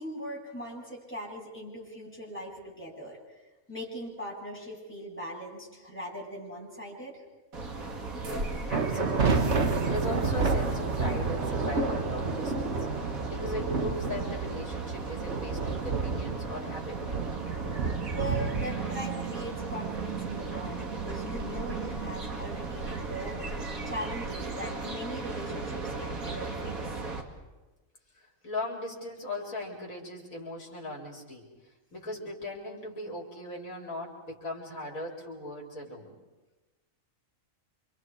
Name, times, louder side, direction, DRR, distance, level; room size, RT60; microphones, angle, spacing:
voice 1, 0.0-3.2 3.7-7.2 18.1-27.0, equal, 10° left, -4 dB, 7.8 m, -40 dB
sound 1, 7.5-27.2, right 4 dB, 85° right, 3.0 m, -36 dB
voice 2, 8.7-9.6 9.9-17.1 28.1-36.2, left 1 dB, 80° left, -1 dB, 4.6 m, -39 dB
sound 2, 8.7-24.1, right 4 dB, 55° right, 1.8 m, -32 dB
28.5 x 26.0 x 4.8 m, 1.1 s
omnidirectional pair, 1.4 m